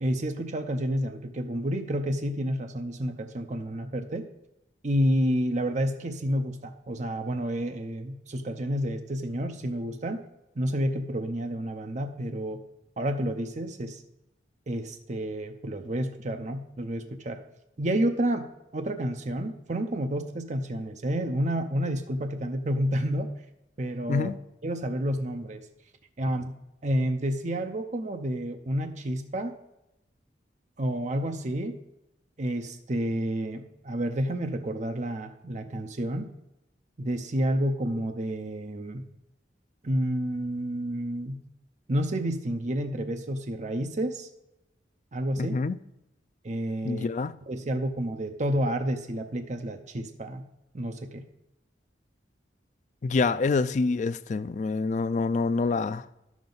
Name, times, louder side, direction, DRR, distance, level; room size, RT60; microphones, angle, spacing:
voice 1, 0.0-4.3 4.8-10.2 10.6-12.6 13.0-14.0 14.7-17.4 17.8-18.5 18.7-23.3 23.8-24.3 24.6-25.6 26.2-26.5 26.8-29.6 30.8-31.8 32.4-36.3 37.0-39.0 39.8-41.4 41.9-44.3 45.1-45.6 46.4-47.1 47.5-50.4 50.7-51.2, equal, 40° right, 0.6 m, -30 dB
voice 2, 45.4-45.8 46.8-47.3 53.0-56.1, left 4 dB, 40° left, 0.3 m, -26 dB
10.5 x 7.2 x 3.9 m
head